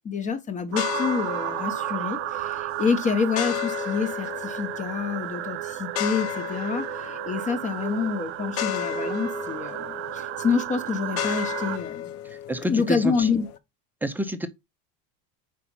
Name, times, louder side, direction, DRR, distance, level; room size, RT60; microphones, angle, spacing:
voice 1, 0.0-12.1 12.7-13.5, left 5 dB, 25° left, 1.0 m, -27 dB
sound 1, 0.7-13.6, left 11 dB, 50° left, 0.9 m, -34 dB
sound 2, 0.7-11.8, right 17 dB, 50° right, 0.6 m, -33 dB
voice 2, 12.5-13.3 14.0-14.5, right 1 dB, 5° right, 0.7 m, -28 dB
5.6 x 5.0 x 5.5 m
cardioid pair, 155°, 29 cm